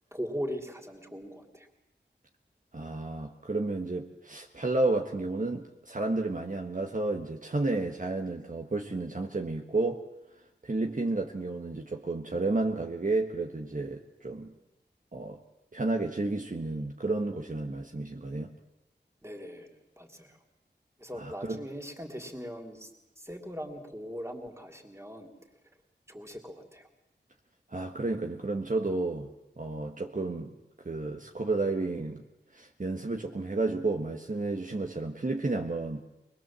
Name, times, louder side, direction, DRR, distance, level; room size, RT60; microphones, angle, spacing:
voice 1, 0.1-1.7 19.2-19.7 20.0-20.4 21.0-22.9 23.2-25.3 26.1-26.8, equal, 15° right, 3 dB, 3.6 m, -40 dB
voice 2, 2.7-10.0 10.6-14.5 15.1-15.4 15.7-18.5 21.1-21.6 27.7-29.3 29.6-30.5 30.8-32.2 32.5-36.0, right 2 dB, 45° right, 2 dB, 1.5 m, -31 dB
24.0 x 21.5 x 7.6 m, 0.97 s
wide cardioid pair, 70°, 18 cm